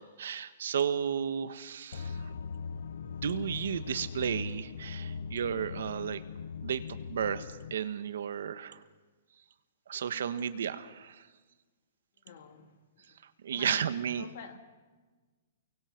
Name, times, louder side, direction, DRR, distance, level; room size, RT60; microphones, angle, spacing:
voice 1, 0.0-2.3 3.0-6.2 6.6-8.8 9.9-11.3 13.2-14.3, right 8 dB, 65° right, 12 dB, 1.4 m, -33 dB
sound 1, 1.9-7.7, left 6 dB, 65° left, 0.8 m, -40 dB
voice 2, 12.2-12.8 13.1-13.2 13.5-13.9 14.2-14.6, left 7 dB, 40° left, 6 dB, 2.5 m, -48 dB
29.5 x 23.5 x 6.0 m, 1.3 s
hypercardioid pair, 180°, 0 cm